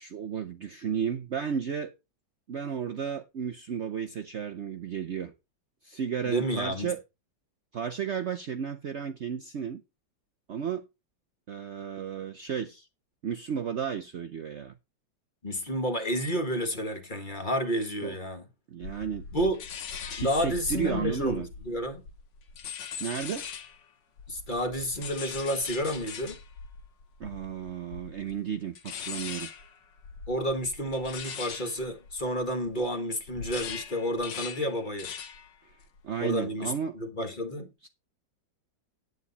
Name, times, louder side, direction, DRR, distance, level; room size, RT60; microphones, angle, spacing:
voice 1, 0.0-1.9 2.5-5.3 5.8-7.0 7.7-9.8 10.5-10.8 11.5-12.9 13.2-14.7 18.0-18.2 18.7-19.3 20.1-21.5 23.0-23.5 27.2-29.5 35.6-35.7 36.0-37.0 37.8-37.9, right 7 dB, 80° right, 0.6 m, -33 dB
voice 2, 6.2-6.9 15.4-18.4 19.3-19.6 20.2-22.0 24.3-26.4 30.3-35.1 36.2-37.7, equal, 25° left, 1.5 m, -30 dB
sound 1, 18.8-23.8 24.2-32.9 33.2-35.5 35.8-36.2, left 6 dB, 65° left, 1.6 m, -41 dB
9.6 x 9.3 x 4.1 m
omnidirectional pair, 2.2 m